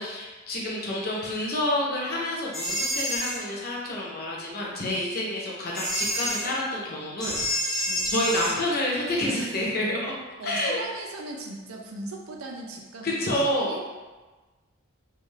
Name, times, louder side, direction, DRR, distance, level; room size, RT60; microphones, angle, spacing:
voice 1, 0.0-10.1 10.4-10.8 13.0-13.7, left 1 dB, 50° left, -3 dB, 0.6 m, -29 dB
sound 1, 2.5-3.4 5.8-6.5 7.2-8.6, equal, ahead, 0.5 m, -28 dB
voice 2, 9.3-9.7 10.4-13.9, right 2 dB, 90° right, 0 dB, 0.5 m, -38 dB
2.4 x 2.3 x 3.1 m, 1.2 s
head